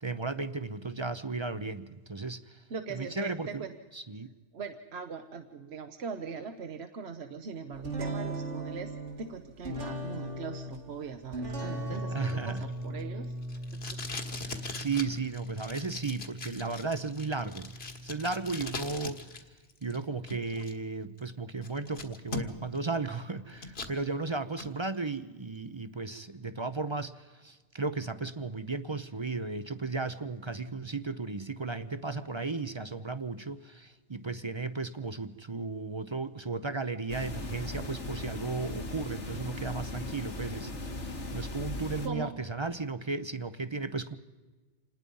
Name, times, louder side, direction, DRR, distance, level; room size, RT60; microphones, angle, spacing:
voice 1, 0.0-2.6 2.9-3.7 3.9-4.3 12.1-12.6 14.4-17.7 18.0-19.4 19.8-44.2, right 3 dB, 30° right, 13 dB, 0.6 m, -35 dB
voice 2, 2.7-3.7 4.5-13.3 13.7-13.8 42.0-42.4, right 5 dB, 65° right, 7 dB, 1.2 m, -40 dB
sound 1, 7.8-19.3, right 1 dB, 85° right, 3.0 m, -39 dB
Packing tape duct tape, 11.9-19.4 19.7-20.7 21.2-21.3 21.6-22.8 23.1-24.0 24.4-24.7, left 3 dB, 60° left, 1.9 m, -41 dB
sound 2, 37.1-42.1, left 2 dB, 80° left, 2.2 m, -38 dB
27.0 x 20.0 x 5.4 m, 1.3 s
omnidirectional pair, 1.2 m